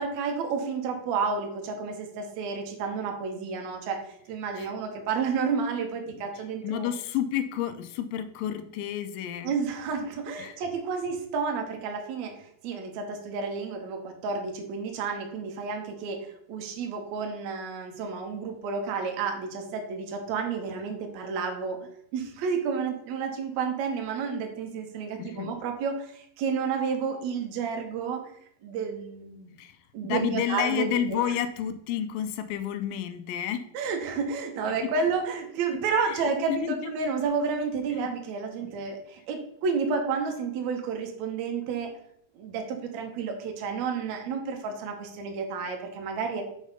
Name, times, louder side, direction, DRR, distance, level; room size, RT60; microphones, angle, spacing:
voice 1, 0.0-6.9 9.4-28.2 28.6-29.5 29.9-31.2 33.7-41.9 42.4-46.4, right 5 dB, 65° right, 4 dB, 2.1 m, -31 dB
voice 2, 6.6-9.5 10.4-10.6 25.2-25.6 29.6-29.8 30.0-33.7 36.1-36.9 37.9-38.1 38.6-38.7, left 9 dB, 85° left, 10 dB, 2.4 m, -30 dB
6.2 x 5.0 x 5.4 m, 0.72 s
omnidirectional pair, 4.0 m